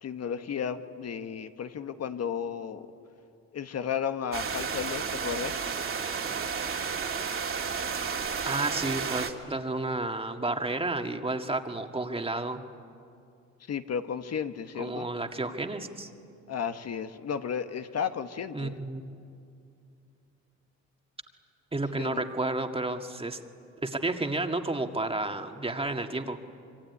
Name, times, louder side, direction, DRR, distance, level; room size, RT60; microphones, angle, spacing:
voice 1, 0.0-2.9 3.5-5.7 13.7-15.1 16.5-18.7 21.9-22.2, left 7 dB, 55° left, 8 dB, 1.3 m, -33 dB
sound 1, 4.3-9.3, right 6 dB, 45° right, 2.5 m, -32 dB
voice 2, 8.5-12.6 14.8-16.1 18.5-19.1 21.7-23.4 23.8-26.4, right 2 dB, 20° right, 5 dB, 1.9 m, -31 dB
26.0 x 23.5 x 9.7 m, 2.5 s
cardioid pair, 90°, 30 cm